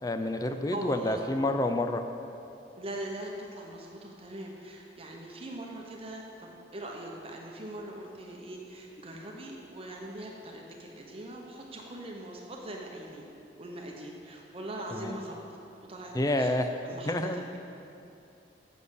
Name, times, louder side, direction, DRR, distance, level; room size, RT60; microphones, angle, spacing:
voice 1, 0.0-2.0 14.9-15.2 16.1-16.7 17.1-17.4, left 1 dB, 20° left, 7 dB, 0.4 m, -28 dB
voice 2, 0.7-1.2 2.8-13.3 13.6-15.4 15.9-16.5 16.8-17.5, right 1 dB, 35° right, 0 dB, 0.9 m, -41 dB
7.5 x 7.0 x 6.4 m, 2.7 s
head